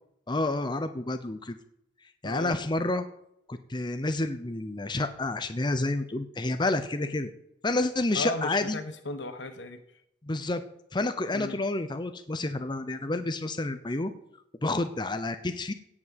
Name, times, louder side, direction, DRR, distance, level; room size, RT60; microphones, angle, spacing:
voice 1, 0.3-1.6 2.2-3.0 3.5-7.3 7.6-8.8 10.2-10.6 10.9-14.1 14.6-15.7, left 2 dB, 25° left, 9 dB, 0.8 m, -29 dB
voice 2, 2.2-2.6 8.1-9.8 11.3-11.6, left 2 dB, 75° left, 9 dB, 1.6 m, -35 dB
16.5 x 6.1 x 8.1 m, 0.76 s
head